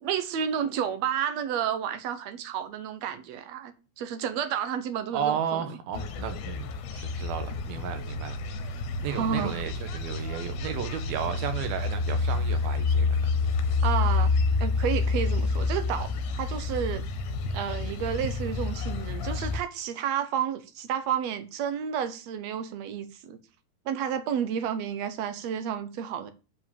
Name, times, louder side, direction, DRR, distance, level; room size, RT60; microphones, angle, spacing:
voice 1, 0.0-5.7 9.1-9.5 13.8-14.3 14.6-17.0 17.5-23.4 23.9-26.3, right 8 dB, 65° right, 1.7 m, -31 dB
voice 2, 5.1-6.7 6.9-8.4 9.0-13.2, right 8 dB, 85° right, 3.1 m, -33 dB
sound 1, 5.9-19.6, left 3 dB, 70° left, 2.3 m, -28 dB
7.5 x 5.1 x 7.1 m
omnidirectional pair, 4.2 m